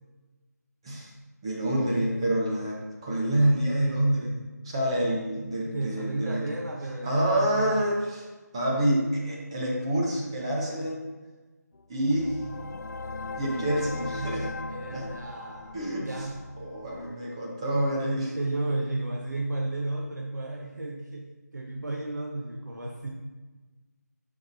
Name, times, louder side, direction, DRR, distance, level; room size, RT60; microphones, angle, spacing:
voice 1, 1.4-6.4 7.0-8.3 8.5-11.0 11.9-12.4 13.4-14.5 14.9-15.1 15.7-16.1 16.6-18.3, right 1 dB, 15° right, -4 dB, 0.9 m, -27 dB
voice 2, 5.6-7.8 14.7-16.4 18.2-23.1, right 2 dB, 80° right, 0 dB, 1.0 m, -33 dB
sound 1, 11.7-17.1, left 3 dB, 75° left, 0.4 m, -38 dB
7.8 x 5.8 x 2.7 m, 1.2 s
figure-of-eight pair, 170°, 9 cm